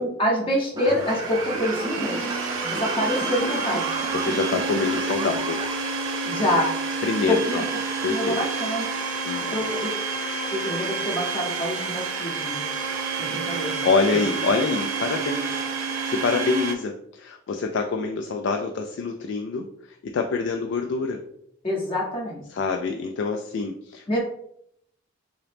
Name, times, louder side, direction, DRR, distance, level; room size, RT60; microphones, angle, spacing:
voice 1, 0.0-2.3 2.6-3.9 6.2-6.7 7.3-7.6 8.1-8.9 9.4-10.0 10.5-12.6 13.2-13.8 14.1-14.3 21.6-22.4 24.1-24.2, equal, 30° left, -3 dB, 0.8 m, -26 dB
sound 1, 0.7-5.7, right 2 dB, 20° right, 0.3 m, -33 dB
Domestic sounds home sounds, 0.9-16.8, right 4 dB, 80° right, 0.6 m, -29 dB
voice 2, 4.1-5.6 7.0-7.7 8.0-8.4 9.2-9.7 13.8-15.6 16.0-21.2 22.5-24.0, left 4 dB, 65° left, 3 dB, 0.3 m, -26 dB
3.8 x 2.9 x 3.3 m, 0.73 s
head